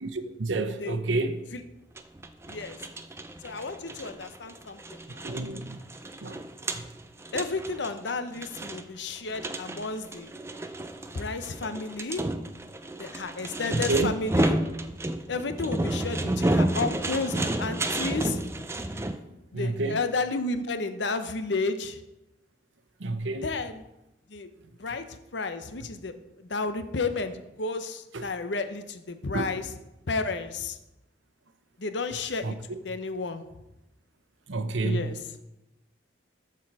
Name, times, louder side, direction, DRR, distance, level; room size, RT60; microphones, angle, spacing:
voice 1, 0.0-1.4 5.1-5.8 6.2-6.4 6.7-6.9 13.9-14.1 19.5-20.0 23.0-23.4 29.3-29.4 32.4-32.5 34.5-35.0, right 3 dB, 90° right, 0.8 m, -29 dB
sound 1, 2.0-19.2, right 1 dB, 15° right, 0.4 m, -31 dB
voice 2, 2.5-2.9 3.4-5.3 7.3-10.3 11.1-12.3 13.0-14.6 15.3-18.4 19.5-22.0 23.4-23.9 24.3-24.5 24.8-29.7 30.1-30.8 31.8-33.6 34.8-35.4, left 3 dB, 75° left, 0.8 m, -32 dB
13.5 x 4.6 x 4.8 m
head